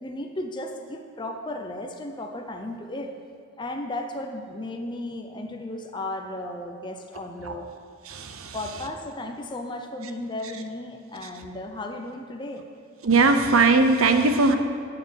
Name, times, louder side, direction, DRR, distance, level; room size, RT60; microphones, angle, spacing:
voice 1, 0.0-3.1 3.6-7.7 8.5-12.7, left 1 dB, 20° left, 4 dB, 0.5 m, -35 dB
voice 2, 8.1-8.6 13.0-14.5, right 3 dB, 90° right, 7 dB, 0.8 m, -19 dB
9.6 x 6.6 x 6.3 m, 2.2 s
head